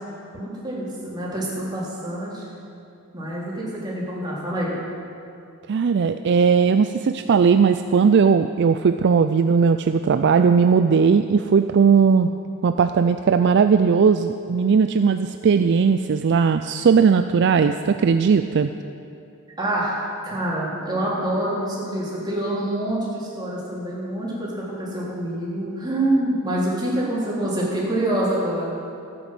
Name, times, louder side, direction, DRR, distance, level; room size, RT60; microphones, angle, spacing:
voice 1, 0.3-2.5 3.1-4.7 19.6-29.0, right 1 dB, 20° right, -6 dB, 3.5 m, -26 dB
voice 2, 5.7-12.3 12.6-18.7, right 6 dB, 55° right, 9 dB, 0.4 m, -18 dB
13.5 x 9.3 x 7.5 m, 2.6 s
head